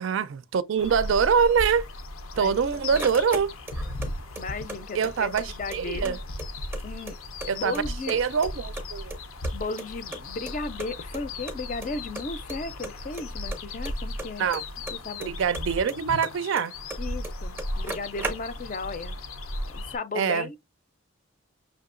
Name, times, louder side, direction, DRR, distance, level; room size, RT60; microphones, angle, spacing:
voice 1, 0.0-1.9 2.4-3.5 4.9-6.2 7.4-7.8 8.1-9.1 14.4-14.6 15.3-16.7 20.2-20.5, right 6 dB, 65° right, 0.4 m, -24 dB
sound 1, 0.8-20.0, left 1 dB, 85° left, 0.6 m, -36 dB
sound 2, 2.3-4.1 4.3-5.4 5.7-5.8 6.0-7.5 7.7-8.5 8.8-10.2 10.5-10.6 10.8-10.9 11.1-11.2 11.5-11.9 12.1-12.6 12.8-15.3 15.5-17.0 17.2-17.3 17.6-18.8, right 2 dB, 10° right, 0.6 m, -36 dB
voice 2, 4.4-6.2 6.8-7.2 7.5-8.2 9.5-14.5 15.0-15.3 17.0-19.2 19.7-20.6, left 3 dB, 40° left, 0.4 m, -35 dB
6.0 x 2.8 x 2.4 m
head